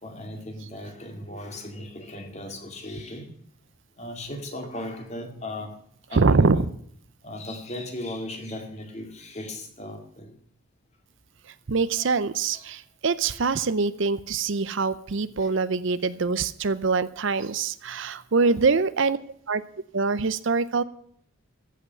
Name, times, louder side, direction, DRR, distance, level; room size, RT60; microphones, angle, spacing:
voice 1, 0.0-3.3 4.0-5.7 6.1-6.7 7.2-10.3 12.0-12.1 18.4-18.6, left 1 dB, 30° left, 4 dB, 2.4 m, -37 dB
voice 2, 6.2-6.6 11.7-19.2 19.5-19.6 19.9-20.8, right 4 dB, 60° right, 15 dB, 0.6 m, -24 dB
15.0 x 5.8 x 9.3 m, 0.64 s
head